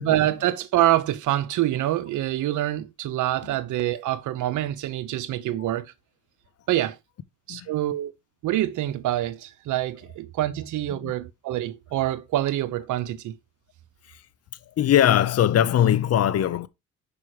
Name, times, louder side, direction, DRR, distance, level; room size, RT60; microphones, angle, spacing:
voice 1, 0.0-5.9 6.7-7.0 7.5-8.1 8.4-13.4, right 14 dB, 80° right, 0.8 m, -26 dB
voice 2, 14.8-16.7, left 10 dB, 55° left, 0.6 m, -21 dB
5.8 x 5.0 x 4.8 m
cardioid pair, 90°, 30 cm